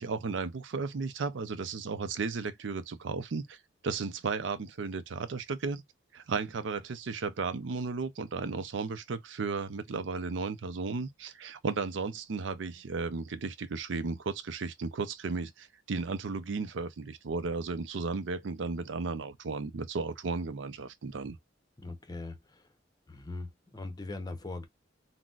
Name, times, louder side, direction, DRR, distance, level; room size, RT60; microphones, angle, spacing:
voice 1, 0.0-3.6 3.8-5.8 6.1-21.4, right 4 dB, 75° right, 0.5 m, -34 dB
voice 2, 21.8-22.7 23.1-24.7, left 2 dB, 20° left, 0.7 m, -40 dB
3.9 x 2.1 x 2.3 m
head